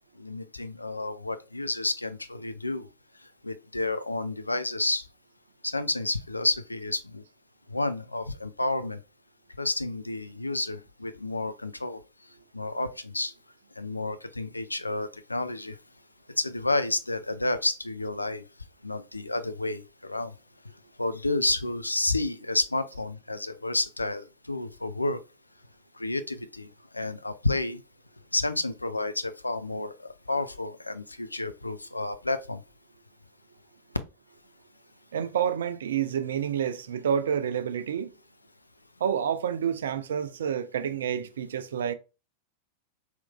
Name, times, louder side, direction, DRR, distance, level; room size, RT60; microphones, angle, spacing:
voice 1, 0.2-2.9 3.4-5.1 5.6-7.2 7.7-9.0 9.6-12.0 12.5-13.3 13.8-15.8 16.4-18.4 18.8-20.3 21.0-25.2 25.9-27.8 28.3-32.6, left 2 dB, 85° left, 0.4 m, -30 dB
voice 2, 35.1-38.1 39.0-41.9, right 8 dB, 65° right, 0.5 m, -29 dB
4.6 x 3.6 x 2.3 m
figure-of-eight pair, 90°, 0 cm